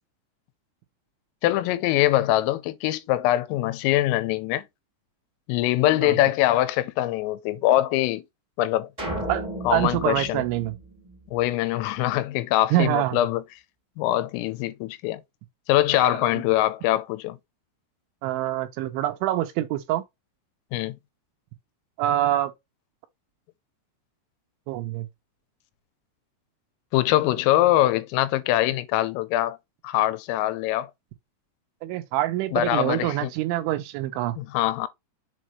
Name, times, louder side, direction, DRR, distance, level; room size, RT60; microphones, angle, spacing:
voice 1, 1.4-4.6 5.5-8.2 8.6-8.9 9.6-10.4 11.3-13.4 14.0-15.2 15.7-17.4 20.7-21.0 26.9-29.6 29.8-30.9 32.5-33.3 34.4-34.9, left 15 dB, 90° left, 3.4 m, -23 dB
sound 1, 9.0-11.5, right 1 dB, 25° right, 0.7 m, -34 dB
voice 2, 9.3-10.7 12.7-13.2 15.9-16.2 18.2-20.0 22.0-22.5 24.7-25.1 31.8-34.3, right 14 dB, 80° right, 2.9 m, -25 dB
7.5 x 4.2 x 3.1 m
omnidirectional pair, 5.8 m